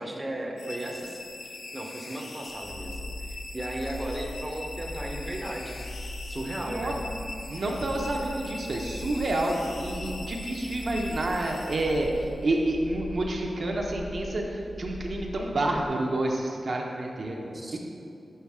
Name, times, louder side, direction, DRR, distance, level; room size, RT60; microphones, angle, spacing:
voice 1, 0.0-3.0 3.3-5.8 6.2-7.0 17.5-17.8, right 1 dB, 15° right, 0 dB, 0.6 m, -36 dB
sound 1, 0.6-12.4, left 2 dB, 85° left, 0.5 m, -42 dB
sound 2, 2.5-15.9, left 1 dB, 15° left, 0.7 m, -40 dB
voice 2, 6.6-6.9 7.5-17.9, right 1 dB, 55° right, 0 dB, 0.6 m, -29 dB
5.6 x 3.9 x 4.7 m, 2.6 s
wide cardioid pair, 115°, 0 cm